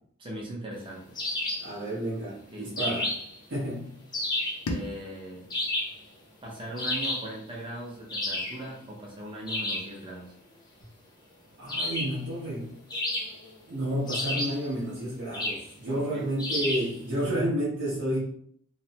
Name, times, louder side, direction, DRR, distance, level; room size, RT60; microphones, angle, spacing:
voice 1, 0.2-1.2 2.5-3.0 4.7-5.5 6.4-10.3 15.9-16.3, right 1 dB, 25° right, -2 dB, 0.6 m, -39 dB
sound 1, 1.1-1.7 2.8-3.4 4.1-4.6 5.5-6.0 6.8-7.3 8.1-8.6 9.5-9.9 11.7-12.2 12.9-13.6 14.1-14.6 15.3-15.7 16.4-16.9, left 1 dB, 20° left, 0.5 m, -31 dB
voice 2, 1.6-3.1 3.5-4.0 11.6-12.8 13.7-18.2, right 1 dB, 55° right, -8 dB, 0.8 m, -31 dB
sound 2, 4.6-7.6, left 1 dB, 90° left, 0.5 m, -40 dB
3.1 x 2.0 x 2.8 m, 0.65 s
head